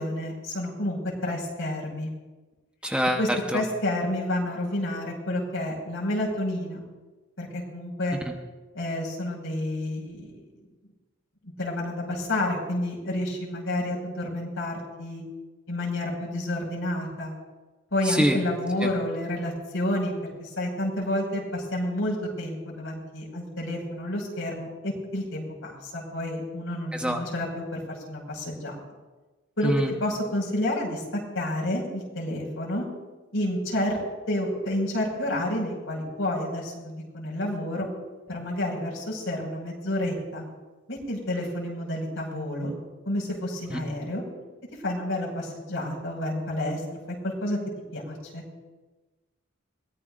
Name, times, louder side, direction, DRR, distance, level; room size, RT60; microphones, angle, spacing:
voice 1, 0.0-2.1 3.2-6.8 7.4-8.2 8.7-10.4 11.6-15.2 15.7-17.3 17.9-27.8 28.1-28.8 29.6-29.7 30.0-31.0 31.3-32.9 33.3-34.0 34.3-37.9 38.3-40.4 40.9-42.7 43.1-44.2 44.8-46.8 47.1-47.6 47.9-48.4, left 1 dB, 75° left, -2 dB, 5.5 m, -30 dB
voice 2, 2.8-3.2 3.5-3.6 18.0-18.4 18.8-18.9 26.9-27.2 29.6-29.9 43.7-43.8, equal, 5° right, 3 dB, 1.0 m, -24 dB
22.5 x 18.0 x 2.6 m, 1.2 s
head